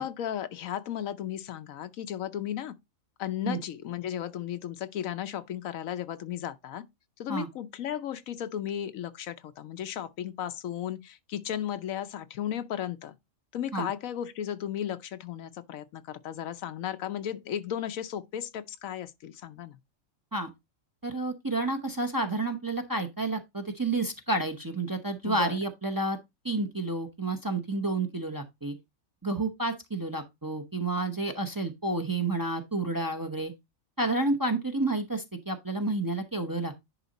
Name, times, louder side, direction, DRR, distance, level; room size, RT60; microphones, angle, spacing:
voice 1, 0.0-2.7 3.2-6.8 7.2-13.2 13.5-19.8 25.2-25.6, left 10 dB, 80° left, 1.1 m, -35 dB
voice 2, 21.0-26.2 26.4-28.8 29.2-33.5 34.0-36.8, right 2 dB, 20° right, 0.7 m, -30 dB
10.0 x 3.8 x 4.0 m
omnidirectional pair, 1.4 m